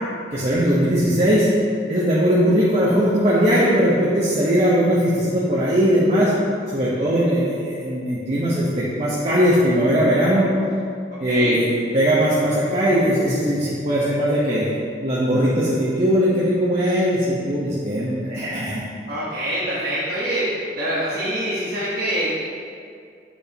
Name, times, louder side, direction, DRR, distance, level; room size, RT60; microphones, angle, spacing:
voice 1, 0.3-1.5 1.9-6.3 6.7-10.5 11.2-14.7 15.0-18.8, equal, 40° right, -7 dB, 1.0 m, -19 dB
voice 2, 11.3-11.6 19.1-22.3, right 1 dB, 55° right, -9 dB, 1.2 m, -25 dB
8.0 x 7.0 x 2.9 m, 2.3 s
head